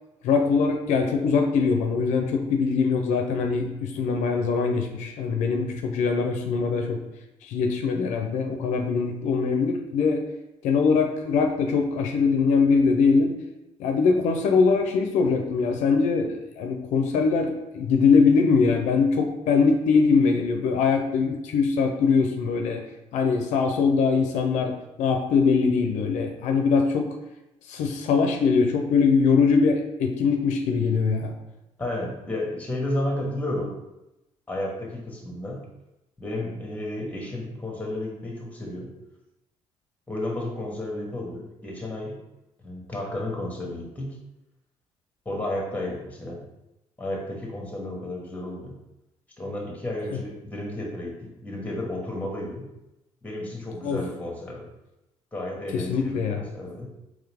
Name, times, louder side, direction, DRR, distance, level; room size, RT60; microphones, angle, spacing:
voice 1, 0.2-7.0 7.4-10.2 10.6-13.3 13.8-22.8 23.1-27.1 27.7-31.3 50.1-50.2 53.8-54.0 55.7-56.4, left 5 dB, 80° left, 3 dB, 0.5 m, -22 dB
voice 2, 31.8-33.8 34.5-35.6 36.2-38.9 40.1-42.2 42.6-44.2 45.2-46.4 47.0-48.8 49.4-52.7 53.2-54.7 55.3-56.9, left 1 dB, 10° left, -1 dB, 1.4 m, -32 dB
3.8 x 3.1 x 3.5 m, 0.94 s
cardioid pair, 80°, 12 cm